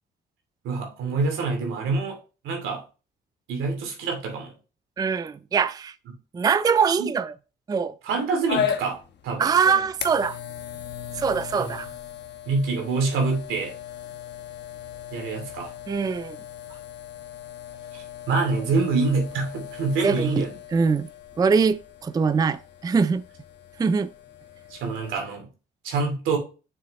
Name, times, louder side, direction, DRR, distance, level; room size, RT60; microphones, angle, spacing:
voice 1, 0.6-2.2 2.4-2.8 3.5-4.5 7.0-7.1 8.0-9.0 9.2-9.5 11.6-11.8 12.5-13.7 15.1-15.7 16.7-16.8 17.9-20.5 24.7-25.5 25.8-26.4, right 4 dB, 90° right, 2.5 m, -26 dB
voice 2, 5.0-5.9 6.3-7.3 7.7-7.9 9.4-10.4 11.2-11.9 15.9-16.4 20.0-20.4 20.7-21.1 21.4-23.2 23.8-24.1, right 5 dB, 20° right, 0.4 m, -23 dB
sound 1, 8.5-25.2, left 9 dB, 60° left, 1.0 m, -37 dB
6.9 x 6.6 x 3.0 m
cardioid pair, 90°, 20 cm